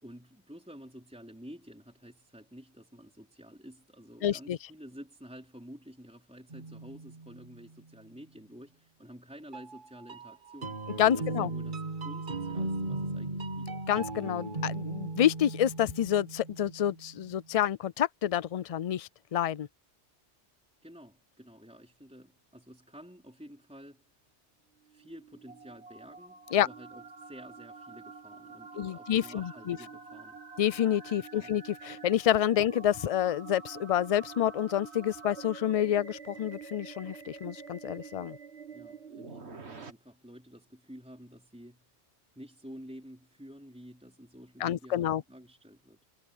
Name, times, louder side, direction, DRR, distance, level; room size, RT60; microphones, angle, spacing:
voice 1, 0.0-13.7 20.8-24.1 24.8-30.4 31.2-31.6 38.7-41.9 42.4-46.0, equal, 5° right, 3.9 m, -50 dB
voice 2, 4.2-4.6 11.0-11.5 13.9-19.7 26.5-26.7 28.8-29.8 30.6-38.4 44.6-45.2, left 10 dB, 55° left, 0.4 m, -28 dB
sound 1, 6.5-7.7 9.5-17.2, right 2 dB, 45° right, 1.6 m, -37 dB
sound 2, 24.8-39.9, right 5 dB, 70° right, 2.1 m, -47 dB
omnidirectional pair, 1.2 m